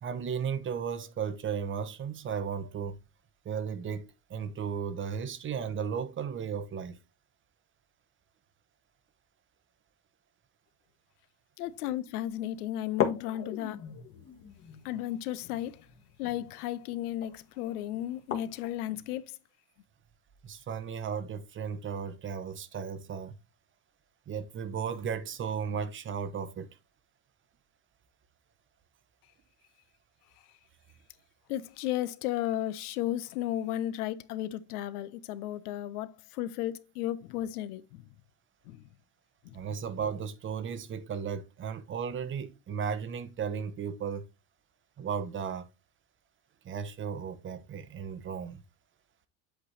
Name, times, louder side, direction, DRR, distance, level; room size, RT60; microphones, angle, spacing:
voice 1, 0.0-3.0 3.4-7.0 20.4-23.3 24.3-26.7 39.5-44.3 45.0-45.7 46.6-48.6, right 7 dB, 25° right, 0.8 m, -35 dB
voice 2, 11.6-13.8 14.8-15.9 16.2-19.4 31.5-38.0 38.7-38.8 39.4-39.6, left 13 dB, 90° left, 0.7 m, -34 dB
sound 1, 11.7-11.8 12.2-12.3 12.9-18.8, left 8 dB, 30° left, 1.2 m, -38 dB
8.1 x 3.3 x 4.1 m
supercardioid pair, 120°, 44 cm